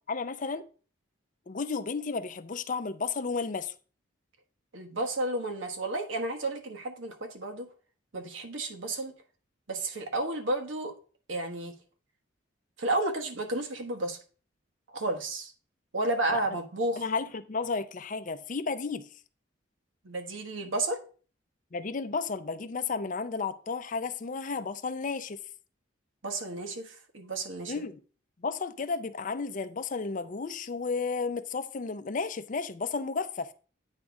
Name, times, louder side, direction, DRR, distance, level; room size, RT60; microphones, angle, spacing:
voice 1, 0.1-0.6 1.5-3.7 16.3-16.4 17.0-19.1 21.7-25.4 27.7-28.0 28.4-33.5, left 4 dB, 40° left, 0.5 m, -33 dB
voice 2, 4.7-7.7 8.1-9.1 9.7-10.9 11.3-11.7 12.8-14.2 14.9-15.5 15.9-17.0 20.0-21.0 26.2-27.7, right 2 dB, 80° right, 1.2 m, -32 dB
8.9 x 3.6 x 5.1 m
head